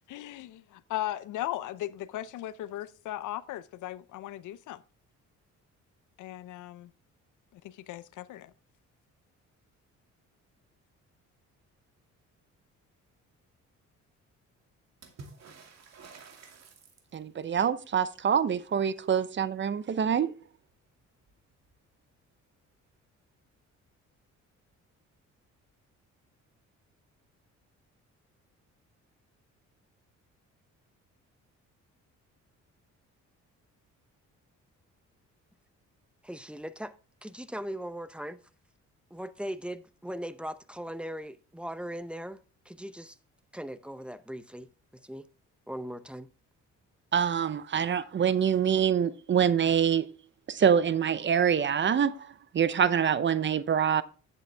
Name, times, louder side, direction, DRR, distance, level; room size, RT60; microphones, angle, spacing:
voice 1, 0.1-4.8 6.2-6.9 7.5-8.5, left 13 dB, 80° left, 0.6 m, -37 dB
Water / Splash splatter, 15.0-17.4 20.7-20.8 21.0-21.8 22.9-23.0, right 4 dB, 60° right, 2.4 m, -51 dB
voice 2, 17.1-20.3 47.1-50.1 50.5-52.2 52.5-54.0, right 8 dB, 40° right, 0.7 m, -25 dB
voice 3, 36.2-36.9 37.2-38.4 39.1-42.4 42.7-43.1 43.5-44.7 45.0-45.2 45.7-46.3, equal, 5° right, 0.7 m, -39 dB
10.0 x 8.3 x 3.4 m
cardioid pair, 90°, 30 cm